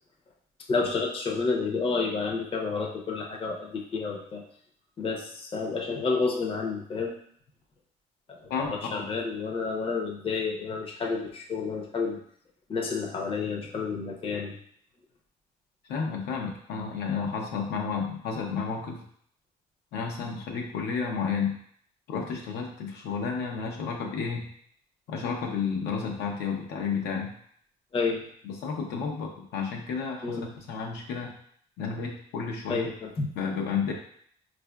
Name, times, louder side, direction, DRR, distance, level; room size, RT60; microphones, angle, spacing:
voice 1, 0.7-4.4 5.0-7.1 8.3-12.2 12.7-14.6 27.9-28.2 30.2-30.5 32.7-33.3, left 4 dB, 35° left, 0 dB, 0.6 m, -30 dB
voice 2, 8.5-9.1 15.9-19.0 19.9-21.6 22.1-24.5 25.1-27.3 28.4-31.3 31.8-32.9 33.4-33.9, left 5 dB, 80° left, 0 dB, 0.6 m, -31 dB
4.3 x 2.5 x 2.2 m, 0.62 s
cardioid pair, 110°, 17 cm